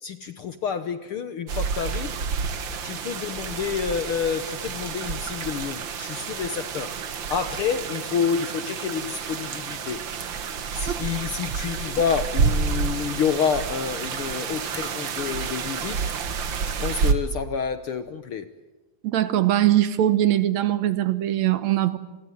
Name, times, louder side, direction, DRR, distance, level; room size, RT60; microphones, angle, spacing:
voice 1, 0.0-2.2 2.8-10.0 10.7-16.0 16.7-18.5, left 7 dB, 60° left, 11 dB, 1.5 m, -29 dB
sound 1, 1.5-17.1, right 5 dB, 45° right, 1.8 m, -29 dB
voice 2, 19.0-22.0, right 12 dB, 70° right, 14 dB, 2.3 m, -21 dB
28.5 x 20.5 x 9.4 m, 1.1 s
omnidirectional pair, 3.5 m